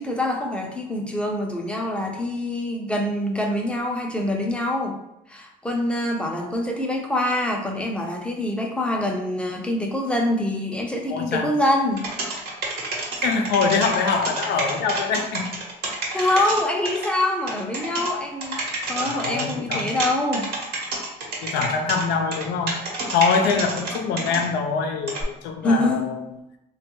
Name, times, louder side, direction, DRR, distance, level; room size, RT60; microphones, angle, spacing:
voice 1, 0.0-5.0 5.3-12.1 16.1-18.6 18.9-20.5 24.2-24.5 25.6-26.1, left 1 dB, 5° left, 0 dB, 0.6 m, -25 dB
voice 2, 11.1-11.5 13.2-15.5 16.1-16.4 19.0-19.9 21.4-22.8 23.1-26.2, left 5 dB, 85° left, 5 dB, 0.5 m, -24 dB
sound 1, 12.0-17.1 17.5-18.1 18.4-20.1 20.3-24.5 25.1-25.2, right 3 dB, 70° right, 1.1 m, -28 dB
3.2 x 2.3 x 3.0 m, 0.88 s
cardioid pair, 110°, 17 cm